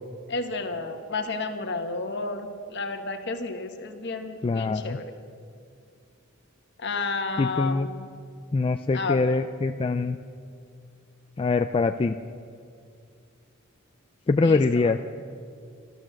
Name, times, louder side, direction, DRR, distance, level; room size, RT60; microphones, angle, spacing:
voice 1, 0.3-5.1 6.8-8.1 8.9-9.3 14.4-14.9, left 3 dB, 55° left, 6 dB, 1.3 m, -31 dB
voice 2, 4.4-5.0 7.4-7.9 8.5-10.2 11.4-12.2 14.3-15.0, left 3 dB, 25° left, 7 dB, 0.3 m, -23 dB
14.0 x 12.5 x 7.5 m, 2.4 s
head